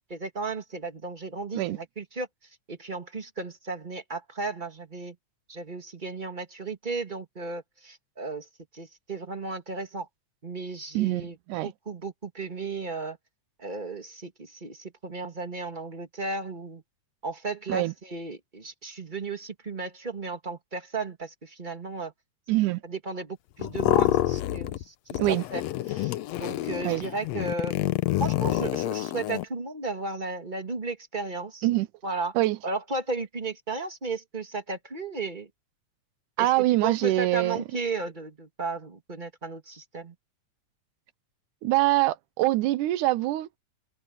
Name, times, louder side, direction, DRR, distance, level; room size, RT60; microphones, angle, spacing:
voice 1, 0.1-2.3 2.7-5.1 5.5-8.5 8.7-10.1 10.4-11.3 11.6-13.2 13.6-16.8 17.2-22.1 22.8-25.2 25.5-25.6 25.9-27.7 28.2-31.7 32.0-32.3 32.6-35.5 36.4-36.5 36.8-40.1, right 3 dB, 20° right, 1.4 m, -34 dB
voice 2, 10.9-11.7 17.7-17.9 22.5-22.8 25.2-25.4 26.8-27.0 31.6-31.9 32.4-32.6 36.4-37.6 41.6-43.6, right 17 dB, 85° right, 2.3 m, -24 dB
sound 1, 23.6-24.8 25.1-29.4, left 14 dB, 75° left, 1.6 m, -27 dB
omnidirectional pair, 3.5 m